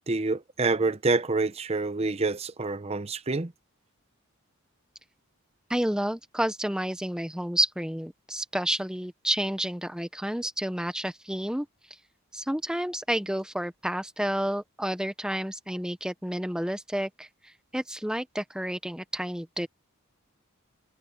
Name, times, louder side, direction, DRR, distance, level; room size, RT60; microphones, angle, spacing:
voice 1, 0.1-3.5, right 3 dB, 30° right, 0.7 m, -27 dB
voice 2, 5.7-11.7 12.3-17.3 17.7-19.7, right 1 dB, 5° right, 0.9 m, -30 dB
head